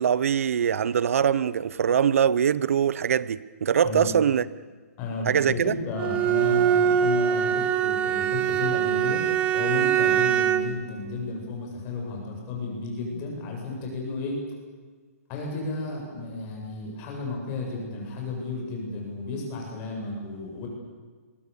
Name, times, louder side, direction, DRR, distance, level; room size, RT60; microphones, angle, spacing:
voice 1, 0.0-4.4 5.3-5.7, right 8 dB, 60° right, 19 dB, 0.9 m, -23 dB
voice 2, 5.0-9.2 9.5-14.4 15.3-20.7, left 3 dB, 25° left, 0 dB, 7.4 m, -33 dB
Bowed string instrument, 6.0-10.8, right 9 dB, 15° right, 0.8 m, -23 dB
27.5 x 22.5 x 7.0 m, 1.5 s
hypercardioid pair, 165°, 9 cm